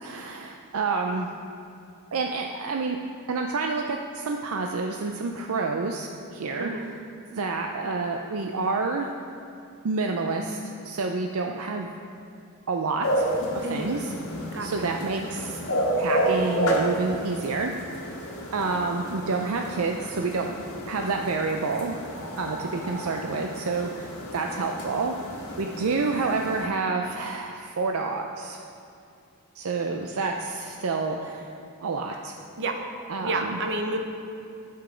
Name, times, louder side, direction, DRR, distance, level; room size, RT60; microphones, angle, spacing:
voice 1, 0.0-1.3 2.1-3.0 3.3-6.7 7.3-9.1 9.8-11.9 12.7-13.3 13.5-14.1 14.6-15.6 16.0-17.7 18.5-20.5 20.9-22.1 22.4-25.2 25.6-28.6 29.5-31.5 31.8-32.3 33.1-33.6, right 3 dB, 75° right, 2 dB, 0.5 m, -28 dB
voice 2, 6.6-6.9 13.6-13.9 14.5-14.9 32.6-32.8 33.2-34.0, right 2 dB, 55° right, 4 dB, 0.9 m, -30 dB
sound 1, 13.0-26.7, right 1 dB, 75° left, 1.6 m, -31 dB
10.5 x 7.0 x 5.0 m, 2.5 s
head